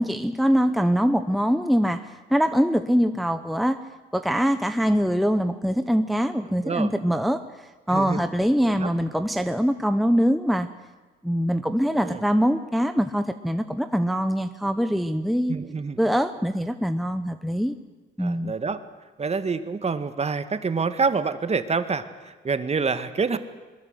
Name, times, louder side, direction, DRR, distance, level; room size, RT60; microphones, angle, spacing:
voice 1, 0.0-3.8 4.1-10.7 11.2-15.5 16.0-17.7 18.2-18.5, equal, ahead, 9 dB, 0.9 m, -23 dB
voice 2, 6.5-6.9 7.9-8.2 8.6-8.9 12.0-12.2 15.5-16.0 18.2-18.8 19.2-23.4, right 4 dB, 30° right, 11 dB, 1.6 m, -27 dB
23.5 x 21.5 x 8.1 m, 1.3 s
cardioid pair, 90°, 20 cm